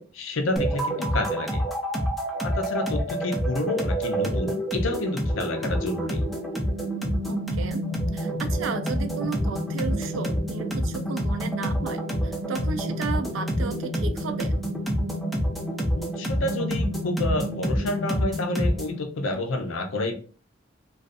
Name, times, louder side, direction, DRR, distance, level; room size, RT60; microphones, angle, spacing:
voice 1, 0.0-1.6 2.4-6.2 16.0-20.1, left 2 dB, 75° left, 6 dB, 0.5 m, -29 dB
sound 1, 0.6-19.0, equal, ahead, 0.4 m, -27 dB
voice 2, 7.3-7.8 8.1-14.5, right 5 dB, 70° right, 9 dB, 0.4 m, -34 dB
2.4 x 2.3 x 2.4 m, 0.39 s
head